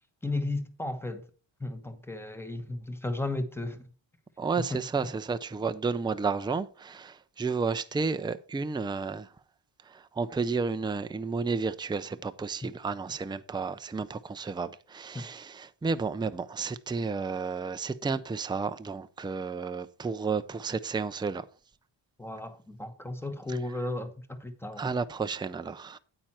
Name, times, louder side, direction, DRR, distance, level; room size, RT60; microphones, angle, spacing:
voice 1, 0.2-1.3 1.6-3.9 4.7-4.8 15.1-15.3 22.2-24.9, left 2 dB, 5° left, 1.1 m, -34 dB
voice 2, 4.4-9.3 9.8-21.5 23.5-23.6 24.8-26.0, right 4 dB, 10° right, 0.4 m, -32 dB
9.0 x 8.9 x 4.3 m
wide cardioid pair, 140°, 46 cm